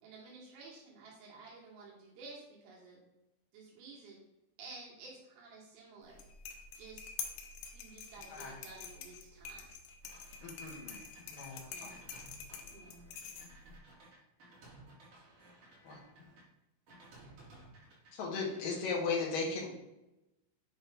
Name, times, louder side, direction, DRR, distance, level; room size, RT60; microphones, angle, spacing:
voice 1, 0.0-3.0 3.5-4.2 4.6-6.3 6.8-7.1 7.7-9.7 11.6-12.0 12.7-13.1 17.2-17.4, right 3 dB, 80° right, -4 dB, 4.3 m, -52 dB
sound 1, 6.1-13.8, left 6 dB, 85° left, 2.5 m, -47 dB
voice 2, 8.3-8.6 10.4-11.0 11.3-11.9 15.8-16.0 18.1-19.7, left 4 dB, 60° left, -2 dB, 2.4 m, -37 dB
sound 2, 10.0-16.4 16.9-18.1 18.4-19.0, right 1 dB, 50° right, 2.8 m, -58 dB
8.9 x 3.2 x 5.3 m, 0.95 s
omnidirectional pair, 5.9 m